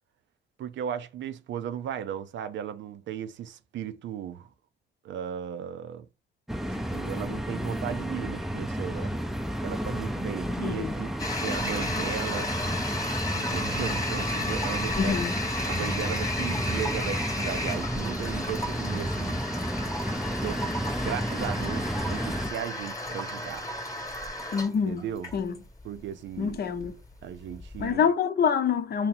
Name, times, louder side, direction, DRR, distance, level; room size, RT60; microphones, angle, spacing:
voice 1, 0.6-4.5 5.0-6.0 6.7-9.1 9.6-11.1 11.4-12.5 13.3-15.2 15.7-19.4 20.4-23.6 24.9-25.3 25.8-26.6 27.2-28.1, right 9 dB, 70° right, 0.5 m, -36 dB
sound 1, 6.5-22.5, equal, ahead, 0.5 m, -32 dB
voice 2, 10.6-10.9 15.0-15.4 24.5-25.0 25.3-25.5 26.4-27.0 27.8-29.1, left 7 dB, 55° left, 0.7 m, -26 dB
Toilet flush, 11.2-27.9, left 1 dB, 15° left, 1.1 m, -33 dB
2.8 x 2.8 x 4.1 m
cardioid pair, 90°, 20 cm